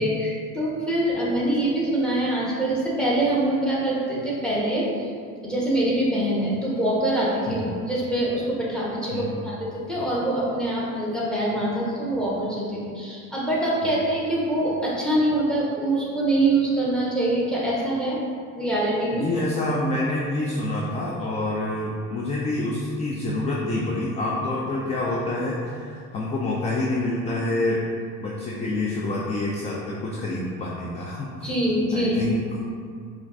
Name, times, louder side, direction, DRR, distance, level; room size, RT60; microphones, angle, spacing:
voice 1, 0.0-5.1 5.4-18.2 18.5-19.3 31.4-32.3, right 1 dB, ahead, -6 dB, 1.1 m, -24 dB
voice 2, 9.1-9.5 19.1-27.8 28.2-31.5 31.9-32.6, left 2 dB, 20° left, -4 dB, 0.3 m, -27 dB
4.9 x 2.5 x 2.5 m, 2.2 s
supercardioid pair, 90°, 39 cm